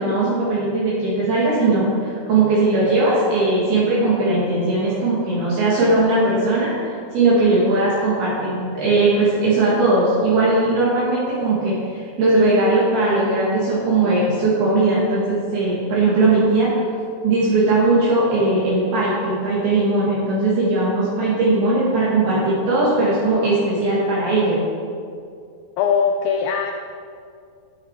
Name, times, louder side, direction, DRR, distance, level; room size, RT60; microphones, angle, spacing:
voice 1, 0.0-6.9 7.1-16.7 17.2-24.6, right 2 dB, 65° right, -8 dB, 3.9 m, -19 dB
voice 2, 25.8-26.8, left 6 dB, 90° left, 4 dB, 2.0 m, -20 dB
13.5 x 9.9 x 4.8 m, 2.3 s
omnidirectional pair, 5.0 m